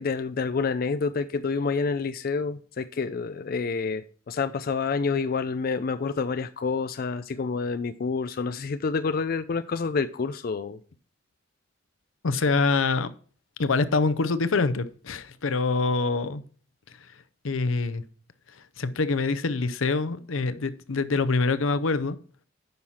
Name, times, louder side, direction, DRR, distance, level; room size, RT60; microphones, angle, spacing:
voice 1, 0.0-10.8, left 4 dB, 45° left, 0.4 m, -28 dB
voice 2, 12.2-13.1 13.6-16.4 17.4-18.0 18.5-22.2, left 3 dB, 85° left, 0.7 m, -25 dB
9.4 x 5.6 x 4.3 m
head